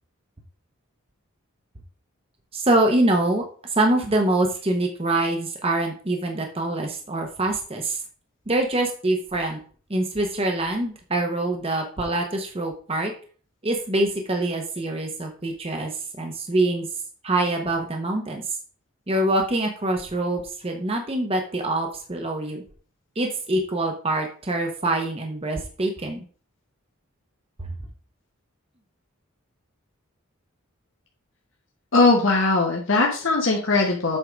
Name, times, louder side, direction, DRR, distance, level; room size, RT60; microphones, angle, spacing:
voice 1, 2.5-8.0 8.5-9.6 9.9-13.1 13.6-16.9 17.2-18.6 19.1-22.6 23.2-26.2 27.6-27.7, right 2 dB, 25° right, 3 dB, 0.9 m, -25 dB
voice 2, 31.9-34.2, left 3 dB, 60° left, -1 dB, 1.2 m, -20 dB
7.9 x 3.7 x 5.0 m, 0.42 s
head